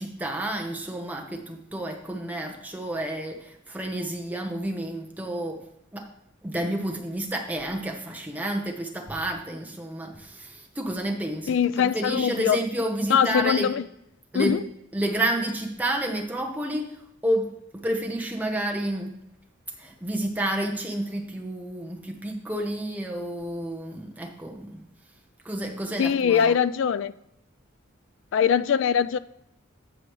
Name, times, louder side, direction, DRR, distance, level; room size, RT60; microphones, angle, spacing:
voice 1, 0.0-5.6 5.9-6.1 6.4-13.7 14.3-14.6 14.9-19.2 19.8-24.8 25.4-26.6, right 1 dB, 10° right, 1.0 m, -30 dB
voice 2, 11.5-12.6 13.1-13.9 14.3-14.6 26.0-27.1 28.3-29.2, left 7 dB, 65° left, 0.3 m, -22 dB
14.5 x 5.2 x 3.1 m
head